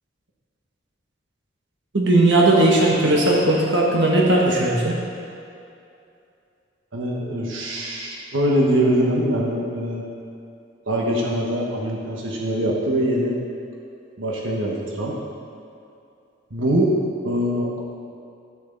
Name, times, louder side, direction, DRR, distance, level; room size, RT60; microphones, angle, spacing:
voice 1, 1.9-5.0, right 2 dB, 70° right, -3 dB, 1.2 m, -17 dB
voice 2, 6.9-10.1 10.9-13.4 14.2-15.1 16.5-16.9 17.2-17.8, equal, 90° right, -2 dB, 1.3 m, -23 dB
11.5 x 7.0 x 3.9 m, 2.6 s
head